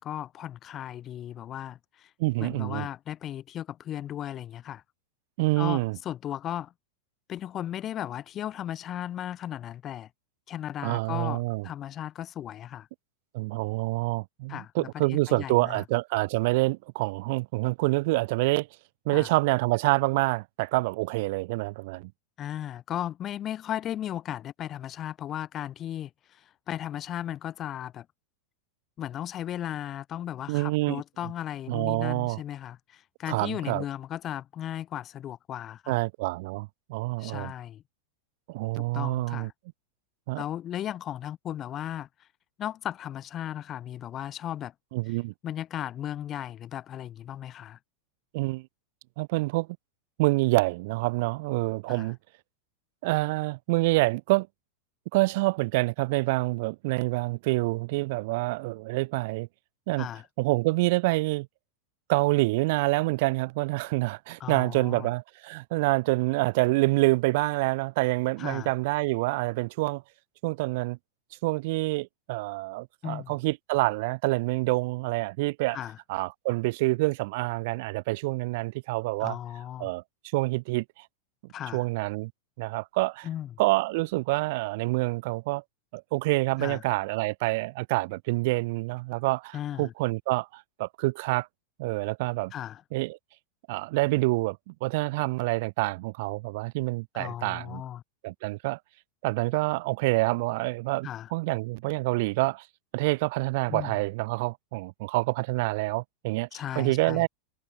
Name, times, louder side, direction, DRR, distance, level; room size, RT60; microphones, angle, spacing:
voice 1, 0.0-2.1 2.4-4.8 5.6-6.7 7.3-10.1 10.5-12.9 14.5-15.8 19.1-19.3 22.4-28.1 29.0-36.0 37.2-37.8 38.7-39.5 40.4-42.1 42.6-44.7 45.4-47.8 51.9-52.1 60.0-60.2 64.4-65.1 68.4-68.7 73.0-73.3 75.7-76.0 79.2-79.9 81.5-81.8 83.2-83.5 86.6-86.8 89.5-89.9 92.5-92.8 97.1-98.0 101.0-101.3 103.7-104.0 106.5-107.3, left 11 dB, 30° left, 2.1 m, -36 dB
voice 2, 2.2-2.9 5.4-6.0 10.8-11.7 13.3-18.7 19.0-22.1 30.5-31.0 31.7-32.4 33.3-33.8 35.9-37.5 38.5-39.5 40.3-40.4 44.9-45.3 48.3-48.7 49.2-49.7 50.2-52.2 53.0-54.5 55.1-59.5 59.9-60.1 60.4-61.5 62.1-70.0 70.4-71.0 71.4-75.8 76.1-79.4 79.8-80.0 80.3-81.1 81.7-82.3 82.6-83.3 83.6-85.6 85.9-91.5 91.8-92.5 92.9-93.2 93.7-97.8 98.2-98.8 99.2-102.7 102.9-107.3, right 23 dB, 50° right, 3.5 m, -27 dB
figure-of-eight pair, 90°, 0 cm